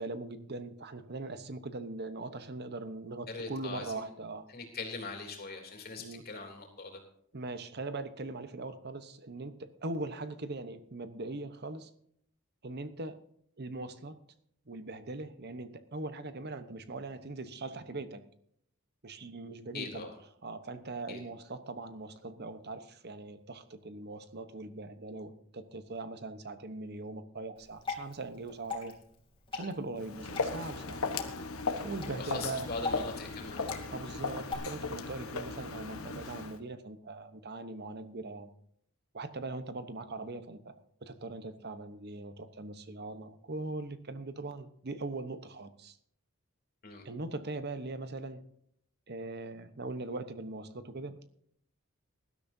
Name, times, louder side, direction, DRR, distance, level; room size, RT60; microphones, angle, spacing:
voice 1, 0.0-4.5 6.0-6.3 7.3-11.9 12.6-13.2 13.6-14.2 14.7-18.3 19.0-20.1 20.4-29.0 29.5-31.0 31.8-32.7 33.9-38.5 39.1-46.0 47.0-48.4 49.1-51.3, right 2 dB, 50° right, 11 dB, 1.0 m, -41 dB
voice 2, 3.3-4.1 4.5-7.0 19.7-20.1 21.1-21.2 32.1-33.6 46.8-47.1, left 3 dB, 45° left, 2 dB, 3.4 m, -41 dB
Water / Drip, 27.6-34.6, left 4 dB, 25° left, 3.0 m, -42 dB
Walk footsteps, 30.0-36.6, left 4 dB, 75° left, 1.2 m, -37 dB
19.5 x 12.5 x 2.7 m, 0.69 s
head